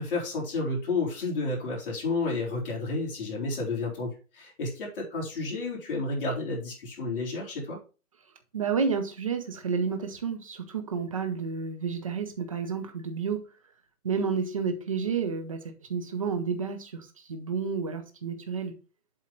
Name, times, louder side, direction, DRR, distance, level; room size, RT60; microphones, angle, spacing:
voice 1, 0.0-7.8, left 3 dB, 35° left, 3.5 m, -31 dB
voice 2, 8.5-13.5 14.0-18.7, right 5 dB, 25° right, 0.6 m, -30 dB
7.6 x 3.7 x 5.5 m
hypercardioid pair, 160°, 45 cm